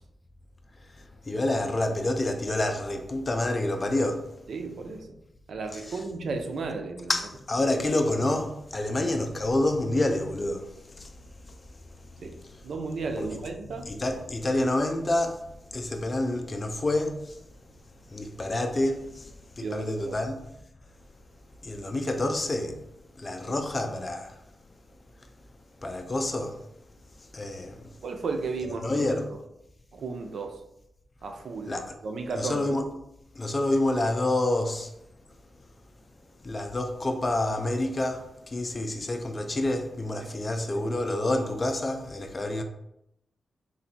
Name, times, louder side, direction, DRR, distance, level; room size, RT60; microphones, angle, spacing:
voice 1, 1.0-4.5 5.7-6.0 7.1-11.1 12.2-12.7 13.2-13.4 13.7-15.4 15.7-17.4 18.1-19.3 19.6-20.4 21.6-22.8 23.2-24.4 25.8-26.6 27.3-27.9 28.8-29.3 31.7-32.0 32.3-32.9 33.3-34.9 36.4-42.6, left 1 dB, 35° left, 0.5 m, -28 dB
voice 2, 4.5-5.0 5.5-7.1 12.2-12.4 12.6-13.9 19.6-20.2 23.5-23.6 28.0-28.9 29.9-30.6 31.2-31.8 32.0-32.6 40.2-40.3, right 4 dB, 75° right, 0.5 m, -34 dB
4.0 x 2.5 x 4.2 m
cardioid pair, 95°, 0 cm